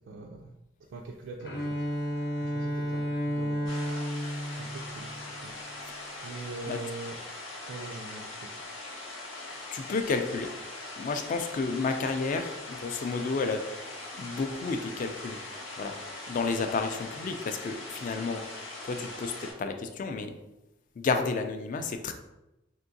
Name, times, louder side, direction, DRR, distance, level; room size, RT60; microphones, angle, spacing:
voice 1, 0.1-0.5 0.9-1.7 2.4-3.7 4.6-5.5 6.2-7.2 7.7-8.5, right 3 dB, 80° right, 1 dB, 0.3 m, -42 dB
Bowed string instrument, 1.4-5.5, equal, 60° left, 0.7 m, -32 dB
sound 1, 3.7-19.5, left 2 dB, 90° left, 1.0 m, -41 dB
voice 2, 9.7-10.6 11.0-13.6 14.2-15.4 15.8-15.9 16.3-18.4 18.8-20.3 21.0-22.1, left 4 dB, 45° left, 7 dB, 0.3 m, -31 dB
3.5 x 2.8 x 2.6 m, 0.95 s
head